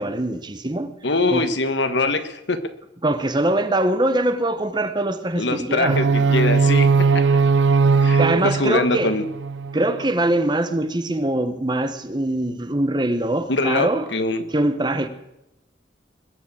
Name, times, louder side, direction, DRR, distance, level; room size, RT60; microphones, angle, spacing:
voice 1, 0.0-0.9 1.3-1.5 3.0-6.1 8.2-9.2 9.7-14.1 14.5-15.1, right 1 dB, 25° right, 1.0 m, -23 dB
voice 2, 1.0-2.6 5.4-6.9 7.1-7.2 8.0-9.2 13.5-14.4, left 2 dB, 70° left, 1.4 m, -23 dB
sound 1, 5.8-9.9, right 4 dB, 75° right, 0.6 m, -19 dB
21.0 x 7.3 x 8.5 m
head